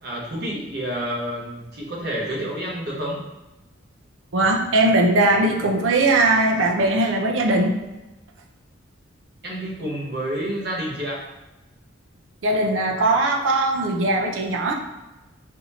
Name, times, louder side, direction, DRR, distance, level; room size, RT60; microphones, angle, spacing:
voice 1, 0.0-3.2 9.4-11.3, equal, 50° right, -4 dB, 1.3 m, -29 dB
voice 2, 4.3-7.8 12.4-14.7, right 2 dB, 80° right, 1 dB, 0.7 m, -20 dB
4.2 x 2.7 x 4.2 m, 1.0 s
head